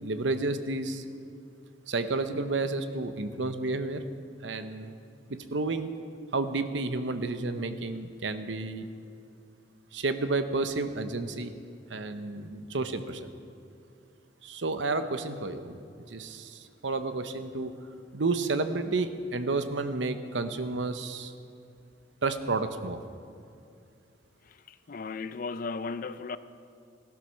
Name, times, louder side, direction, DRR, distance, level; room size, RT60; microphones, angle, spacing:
voice 1, 0.0-1.0 1.9-4.0 4.4-5.0 5.3-5.9 6.3-8.9 9.9-11.5 11.9-13.3 14.4-15.8 16.1-17.7 18.1-21.3 22.2-23.0, right 3 dB, 85° right, 0.9 m, -31 dB
voice 2, 24.4-26.4, left 4 dB, 50° left, 0.5 m, -36 dB
16.0 x 12.0 x 6.4 m
head